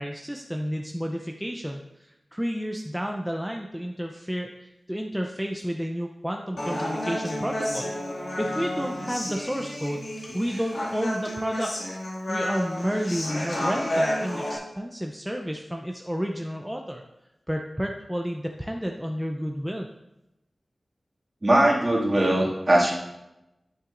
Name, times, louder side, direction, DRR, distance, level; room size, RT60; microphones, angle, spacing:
voice 1, 0.0-7.9 8.4-10.0 10.3-11.7 12.3-17.0 17.5-19.9, equal, 5° right, 1 dB, 0.6 m, -31 dB
Human voice, 6.6-14.6, left 1 dB, 70° left, 2.2 m, -30 dB
voice 2, 21.4-22.9, right 1 dB, 35° right, -4 dB, 2.2 m, -20 dB
9.6 x 8.9 x 2.6 m, 0.92 s
wide cardioid pair, 90°, 0 cm